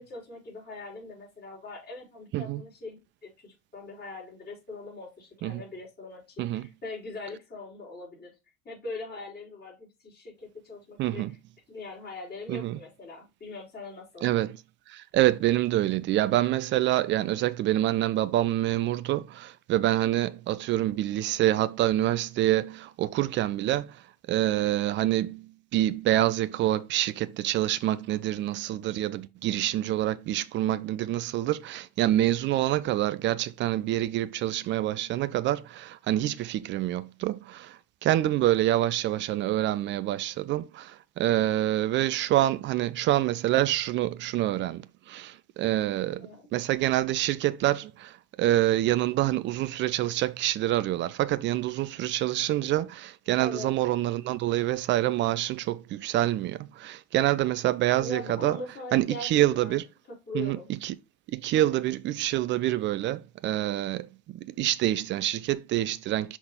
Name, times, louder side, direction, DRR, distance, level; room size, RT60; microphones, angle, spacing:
voice 1, 0.0-8.3 8.6-11.2 11.7-14.3 46.2-46.4 53.4-53.7 54.0-54.1 58.0-59.3 59.6-59.8 60.1-60.7, left 2 dB, 20° left, 3.8 m, -41 dB
voice 2, 11.0-11.3 12.5-12.8 14.2-14.6 14.9-24.0 24.3-58.6 58.9-59.8 60.3-60.9 61.3-66.4, right 14 dB, 30° right, 0.4 m, -26 dB
5.6 x 3.8 x 4.3 m
figure-of-eight pair, 70°, 43 cm